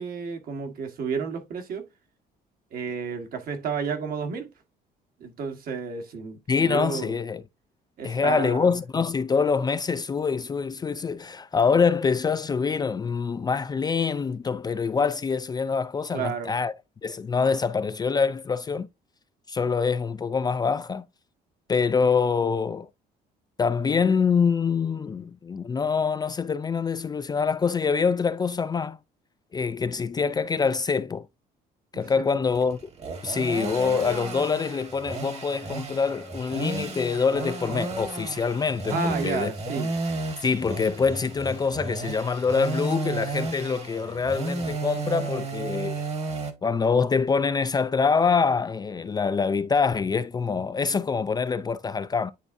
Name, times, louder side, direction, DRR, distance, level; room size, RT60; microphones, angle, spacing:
voice 1, 0.0-1.9 2.7-4.5 5.2-7.2 8.0-8.8 16.1-16.5 31.9-32.4 38.9-39.9, right 5 dB, 60° right, 1.5 m, -32 dB
voice 2, 6.5-7.4 8.0-16.7 17.0-18.9 19.5-21.1 21.7-22.9 23.6-29.0 29.5-31.3 31.9-32.8 33.2-39.5 40.4-46.1 46.6-52.3, left 5 dB, 25° left, 0.4 m, -25 dB
sound 1, 32.5-46.5, right 3 dB, 40° right, 1.4 m, -33 dB
10.0 x 3.6 x 2.6 m
cardioid pair, 110°, 17 cm